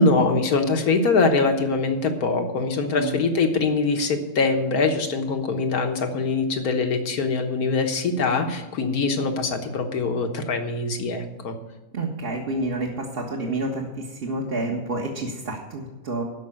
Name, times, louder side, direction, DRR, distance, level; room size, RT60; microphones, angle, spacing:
voice 1, 0.0-11.6, left 3 dB, 75° left, 5 dB, 1.8 m, -23 dB
voice 2, 11.9-16.2, right 2 dB, 40° right, -2 dB, 1.7 m, -29 dB
13.0 x 5.8 x 8.7 m, 1.1 s
omnidirectional pair, 1.6 m